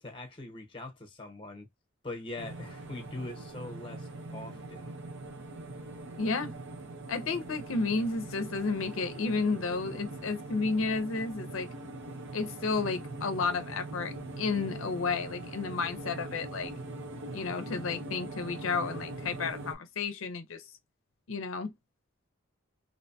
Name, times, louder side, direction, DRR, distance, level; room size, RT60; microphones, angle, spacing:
voice 1, 0.0-1.7 2.0-5.0, left 2 dB, 25° left, 0.9 m, -42 dB
sound 1, 2.4-19.8, right 2 dB, 65° right, 0.7 m, -42 dB
voice 2, 6.2-6.5 7.1-11.7 12.3-16.7 17.3-20.6 21.3-21.7, left 4 dB, 85° left, 0.5 m, -32 dB
2.7 x 2.2 x 2.6 m
head